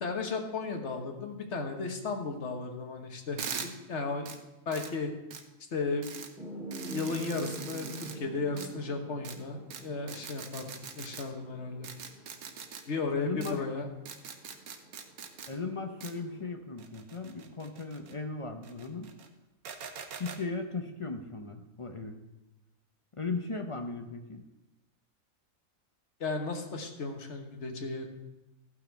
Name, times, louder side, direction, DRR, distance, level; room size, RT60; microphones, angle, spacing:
voice 1, 0.0-4.4 4.7-5.1 5.7-6.3 6.8-11.9 12.9-13.9 26.2-28.1, left 4 dB, 55° left, 4 dB, 1.4 m, -35 dB
sound 1, 3.4-3.7 4.3-4.4 4.7-4.9 5.3-5.4 6.0-6.3 6.7-8.2 8.6-8.7 9.2-9.4 9.7-9.8 10.1-11.2 11.8-12.8 13.4-13.5 14.1-15.5 16.0-16.1 16.8-18.1 18.6-19.3 19.6-20.4, right 7 dB, 90° right, 1.3 m, -42 dB
sound 2, 6.4-16.5, right 1 dB, ahead, 2.0 m, -47 dB
voice 2, 13.2-13.6 15.5-19.1 20.2-22.2 23.1-24.4, left 4 dB, 35° left, 5 dB, 0.5 m, -37 dB
15.0 x 5.8 x 4.6 m, 1.0 s
omnidirectional pair, 1.5 m